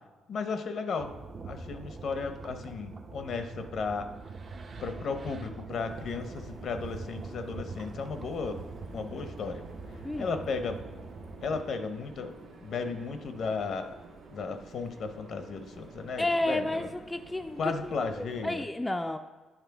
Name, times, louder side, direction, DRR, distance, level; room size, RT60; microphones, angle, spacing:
voice 1, 0.3-1.1 1.4-4.1 4.8-8.6 8.9-9.6 10.2-10.8 11.4-12.4 12.6-14.0 14.3-16.9 17.6-18.6, left 4 dB, 60° left, 8 dB, 0.7 m, -34 dB
sound 1, 1.0-11.6, right 3 dB, 45° right, 0.6 m, -43 dB
sound 2, 5.7-18.6, right 3 dB, 80° right, 1.4 m, -51 dB
voice 2, 10.0-10.4 16.2-19.2, left 1 dB, 10° left, 6 dB, 0.3 m, -32 dB
9.1 x 3.2 x 4.6 m, 1.3 s
cardioid pair, 90°, 0 cm